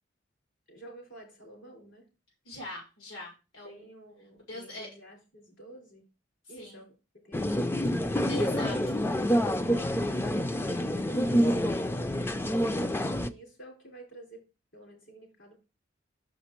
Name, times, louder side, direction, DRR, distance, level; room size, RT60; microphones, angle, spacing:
voice 1, 0.7-2.1 3.6-6.1 6.5-7.0 7.2-8.4 9.6-10.3 10.6-14.4 14.7-15.6, right 1 dB, 65° left, 0 dB, 3.2 m, -50 dB
voice 2, 2.5-3.8 4.5-4.9 6.6-6.8 8.3-9.0, left 1 dB, 85° left, -1 dB, 2.2 m, -41 dB
sound 1, 7.3-13.3, equal, 10° left, 0.3 m, -27 dB
6.5 x 5.1 x 4.4 m, 0.29 s
head